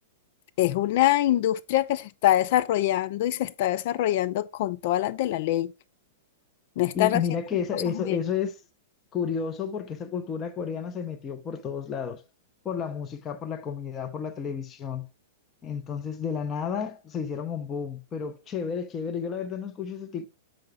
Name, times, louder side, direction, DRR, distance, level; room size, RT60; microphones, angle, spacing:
voice 1, 0.6-5.7 6.8-7.2 7.7-8.2, left 14 dB, 45° left, 0.5 m, -24 dB
voice 2, 6.9-8.5 9.1-12.2 12.6-15.1 15.6-20.3, left 7 dB, 20° left, 0.9 m, -31 dB
7.6 x 5.7 x 3.4 m
figure-of-eight pair, 100°, 0 cm